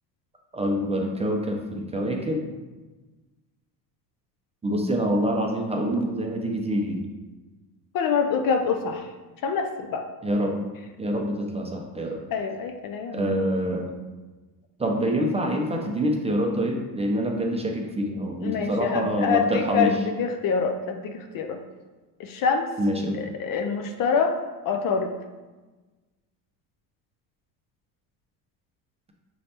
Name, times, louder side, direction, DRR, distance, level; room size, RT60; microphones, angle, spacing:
voice 1, 0.5-2.5 4.6-7.0 10.2-10.6 11.0-12.2 13.1-14.0 14.8-20.0 22.8-23.3, equal, 15° right, 0 dB, 0.5 m, -26 dB
voice 2, 7.9-9.1 9.4-10.0 12.3-13.3 18.4-21.6 22.2-22.7 23.1-24.4 24.7-25.1, left 6 dB, 50° left, 5 dB, 0.5 m, -25 dB
5.5 x 3.2 x 2.8 m, 1.2 s
supercardioid pair, 100°, 46 cm